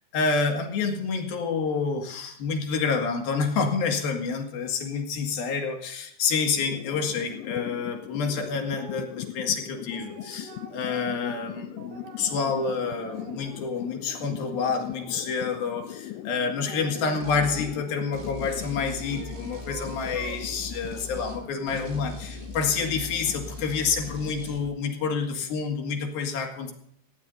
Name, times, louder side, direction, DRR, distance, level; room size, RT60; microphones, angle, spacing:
voice 1, 0.1-26.7, left 5 dB, 60° left, 3 dB, 3.5 m, -28 dB
sound 1, 6.6-26.1, left 13 dB, 90° left, 3.2 m, -41 dB
sound 2, 8.7-9.1 9.6-13.7 14.1-15.6 16.3-18.0 18.8-20.5, right 5 dB, 65° right, 3.8 m, -46 dB
sound 3, 17.2-17.7 18.1-21.4 21.7-24.6, left 1 dB, 20° right, 2.8 m, -40 dB
18.0 x 16.5 x 2.7 m, 0.70 s
omnidirectional pair, 5.1 m